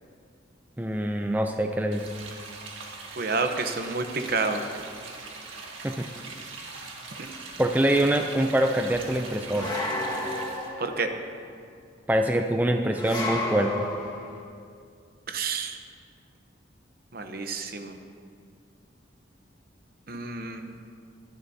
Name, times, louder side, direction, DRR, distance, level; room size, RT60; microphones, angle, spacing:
voice 1, 0.8-2.1 5.8-6.0 7.6-9.7 12.1-13.7, right 1 dB, 10° right, 4 dB, 0.4 m, -24 dB
sound 1, 1.9-10.7, right 3 dB, 85° right, 1.8 m, -41 dB
voice 2, 3.2-4.6 7.2-7.3 10.8-11.1 15.3-15.8 17.1-17.9 20.1-20.8, right 4 dB, 50° right, 6 dB, 0.9 m, -29 dB
sound 2, 9.5-11.2 13.0-14.4, left 1 dB, 20° left, 1.7 m, -32 dB
22.5 x 11.5 x 2.8 m, 2.3 s
head